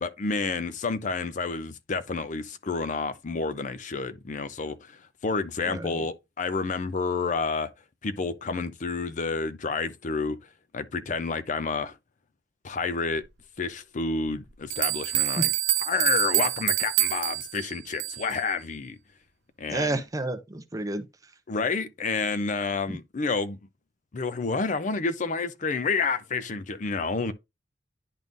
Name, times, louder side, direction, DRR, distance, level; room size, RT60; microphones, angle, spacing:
voice 1, 0.0-7.7 8.0-10.4 10.7-12.0 12.6-13.2 13.6-15.5 15.9-19.0 19.6-20.0 21.5-23.6 24.1-27.3, left 4 dB, 45° left, 0.5 m, -29 dB
voice 2, 5.7-6.1 15.4-15.5 19.7-21.0 22.9-23.0, right 2 dB, 20° right, 0.5 m, -30 dB
sound 1, 14.3-14.4 14.7-18.4, right 13 dB, 65° right, 0.6 m, -26 dB
10.5 x 3.6 x 2.5 m
head